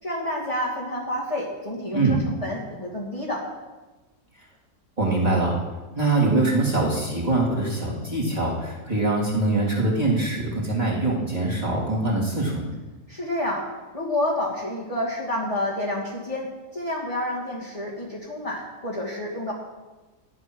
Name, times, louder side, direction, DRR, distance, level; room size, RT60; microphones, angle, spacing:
voice 1, 0.0-3.4 13.1-13.7 13.9-19.5, left 1 dB, 20° left, -5 dB, 2.3 m, -29 dB
voice 2, 5.0-5.6 5.9-12.7, right 2 dB, 25° right, -5 dB, 3.0 m, -23 dB
12.0 x 10.0 x 6.2 m, 1.2 s
omnidirectional pair, 1.7 m